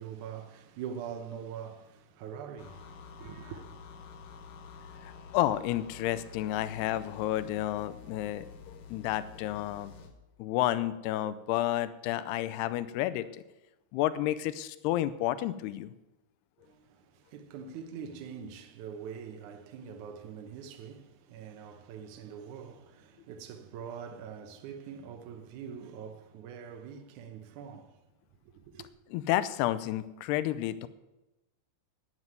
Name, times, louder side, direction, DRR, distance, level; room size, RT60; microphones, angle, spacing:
voice 1, 0.0-3.7 16.6-28.0 28.5-28.9, right 7 dB, 75° right, 1.8 m, -44 dB
sound 1, 2.6-10.1, left 5 dB, 65° left, 2.6 m, -49 dB
voice 2, 5.3-9.9 10.4-13.3 13.9-15.9 29.1-30.9, left 14 dB, 85° left, 2.7 m, -31 dB
9.8 x 9.5 x 9.1 m
omnidirectional pair, 4.7 m